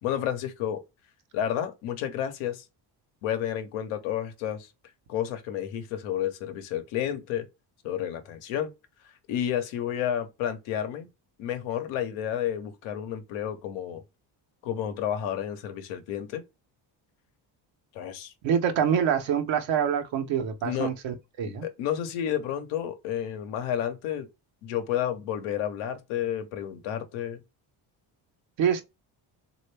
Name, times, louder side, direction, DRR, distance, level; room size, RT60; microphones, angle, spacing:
voice 1, 0.0-0.8 1.3-2.6 3.2-4.7 5.1-7.5 7.8-8.7 9.3-11.1 11.4-14.0 14.6-16.4 17.9-18.3 20.6-20.9 21.4-24.3 24.6-27.4, left 10 dB, 90° left, 0.9 m, -31 dB
voice 2, 18.4-21.7 28.6-28.8, right 8 dB, 70° right, 0.9 m, -26 dB
3.2 x 2.5 x 3.2 m
supercardioid pair, 80°, 48 cm